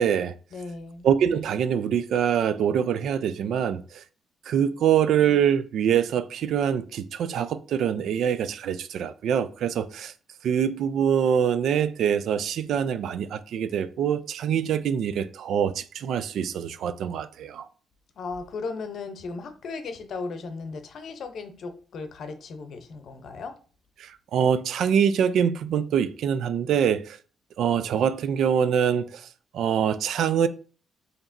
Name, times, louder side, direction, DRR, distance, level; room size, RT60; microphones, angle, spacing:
voice 1, 0.0-0.3 1.0-4.0 4.5-10.1 10.4-17.7 24.0-27.2 27.6-29.3 29.5-30.5, right 8 dB, 75° right, 0.3 m, -24 dB
voice 2, 0.5-1.1 18.2-23.5, left 4 dB, 65° left, 0.6 m, -36 dB
4.9 x 2.9 x 2.6 m
cardioid pair, 90°, 0 cm